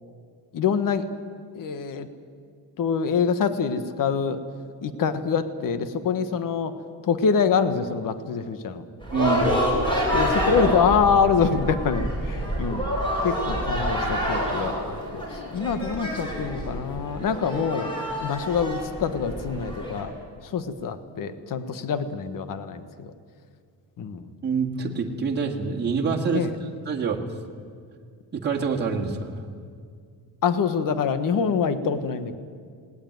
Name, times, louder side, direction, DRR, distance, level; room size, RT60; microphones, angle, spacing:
voice 1, 0.5-1.0 1.5-2.1 2.8-4.4 4.8-6.7 7.0-8.8 10.1-12.8 13.2-15.2 15.5-17.9 18.2-20.1 20.5-23.1 24.0-24.3 26.3-26.5 30.4-32.4, left 6 dB, 50° left, 11 dB, 1.4 m, -25 dB
sound 1, 9.0-20.0, equal, 10° left, 5.2 m, -27 dB
voice 2, 9.1-9.5 24.4-27.2 28.4-29.4, right 5 dB, 25° right, -1 dB, 2.0 m, -26 dB
20.0 x 18.5 x 9.4 m, 2.2 s
cardioid pair, 170°, 41 cm